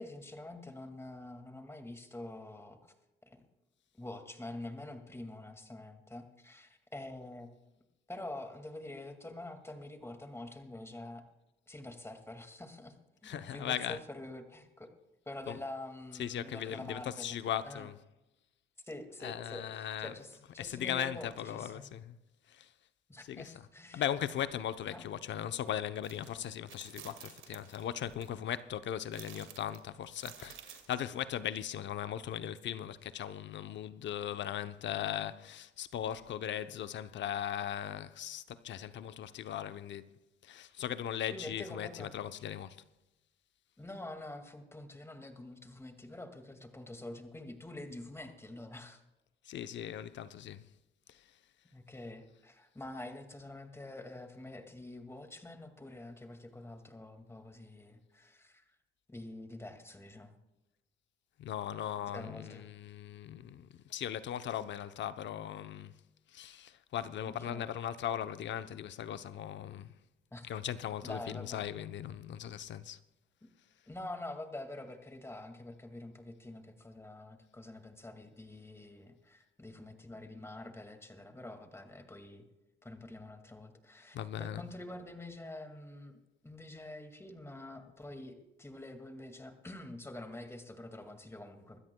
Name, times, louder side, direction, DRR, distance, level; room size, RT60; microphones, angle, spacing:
voice 1, 0.0-2.9 3.3-3.4 3.9-7.5 8.1-11.2 11.7-12.9 13.2-14.9 15.3-17.4 17.6-17.9 18.8-21.9 23.1-24.0 24.9-25.0 41.3-42.1 43.8-49.0 51.7-58.6 59.1-60.4 62.1-62.7 67.5-67.7 70.3-70.5 71.0-71.6 73.9-82.4 82.8-86.2 86.4-91.8, left 1 dB, 15° left, 2.1 m, -46 dB
voice 2, 13.2-14.0 15.5-15.6 16.1-18.0 19.2-22.2 22.5-22.7 23.2-23.7 23.9-40.1 40.4-42.8 49.4-50.6 51.1-51.2 61.4-65.9 66.3-69.9 70.5-73.0 84.1-84.7, left 10 dB, 65° left, 0.8 m, -38 dB
sound 1, 26.0-26.3 26.7-28.3 29.1-30.9, right 9 dB, 75° right, 2.1 m, -52 dB
25.0 x 13.0 x 2.3 m
cardioid pair, 90°, 20 cm